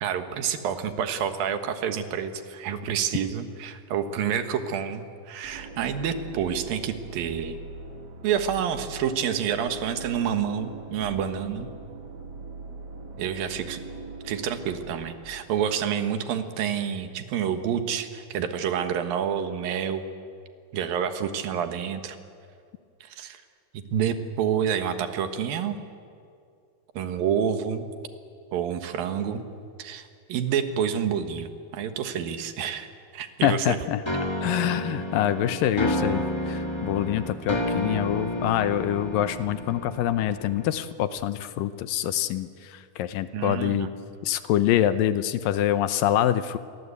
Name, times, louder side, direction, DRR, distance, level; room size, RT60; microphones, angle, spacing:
voice 1, 0.0-7.6 8.2-11.7 13.2-13.8 14.2-20.1 20.7-22.2 23.2-23.4 23.7-25.8 26.9-27.9 28.5-29.4 29.8-31.5 31.7-32.9 33.1-33.8 43.3-43.9, right 8 dB, 75° right, 8 dB, 3.1 m, -28 dB
sound 1, 5.4-16.2, right 3 dB, 40° right, 1.6 m, -41 dB
voice 2, 33.4-34.0 34.4-43.9 44.2-46.6, left 11 dB, 75° left, 12 dB, 2.4 m, -25 dB
sound 2, 34.1-40.9, left 1 dB, 15° left, 1.1 m, -30 dB
28.5 x 23.0 x 8.4 m, 2.4 s
omnidirectional pair, 4.2 m